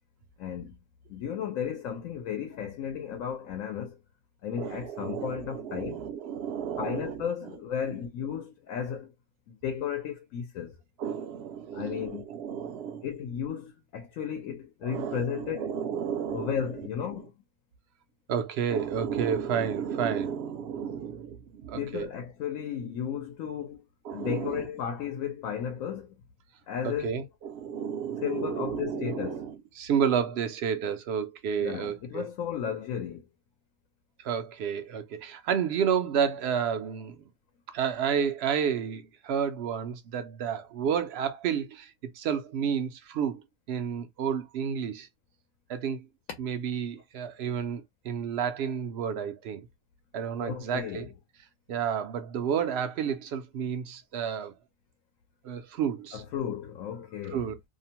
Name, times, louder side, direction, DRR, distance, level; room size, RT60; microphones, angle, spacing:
voice 1, 0.4-0.8 1.1-4.0 4.4-6.0 6.8-9.1 9.5-10.7 11.7-12.3 13.0-15.7 16.3-17.3 21.8-23.8 24.1-26.1 26.7-27.2 28.2-29.4 31.6-33.2 50.4-51.1 56.1-57.5, left 8 dB, 80° left, 1.0 m, -34 dB
voice 2, 4.6-7.5 11.0-13.1 14.8-16.9 18.3-22.1 24.0-24.7 26.8-32.2 34.2-37.2 37.7-41.9 42.2-45.1 45.7-46.0 46.4-49.7 50.1-51.1 51.7-54.5 55.4-56.2 57.3-57.5, right 7 dB, 65° right, 0.7 m, -31 dB
2.7 x 2.1 x 2.8 m
omnidirectional pair, 1.4 m